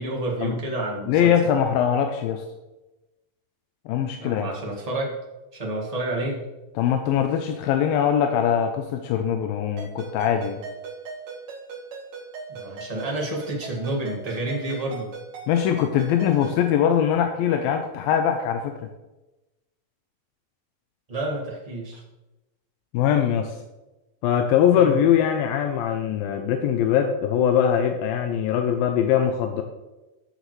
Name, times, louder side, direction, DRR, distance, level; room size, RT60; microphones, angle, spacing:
voice 1, 0.0-1.3 4.2-5.2 5.5-6.5 12.5-15.1 21.1-22.0 24.7-25.0, right 1 dB, 30° right, -2 dB, 0.6 m, -29 dB
voice 2, 1.1-2.4 3.9-4.5 6.8-10.6 15.5-18.7 22.9-23.6 24.2-29.6, left 9 dB, 85° left, 5 dB, 2.4 m, -22 dB
Ringtone, 9.8-16.6, right 5 dB, 70° right, 4.1 m, -39 dB
15.0 x 6.6 x 3.2 m, 1.0 s
omnidirectional pair, 4.1 m